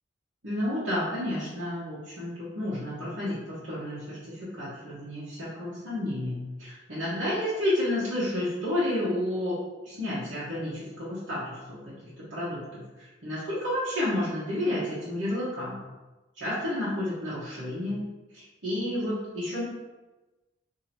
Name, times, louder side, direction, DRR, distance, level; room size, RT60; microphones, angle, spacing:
voice 1, 0.4-12.7 13.0-15.8 16.4-18.0 18.3-19.6, left 1 dB, 70° right, -10 dB, 1.1 m, -31 dB
2.8 x 2.8 x 4.2 m, 1.1 s
head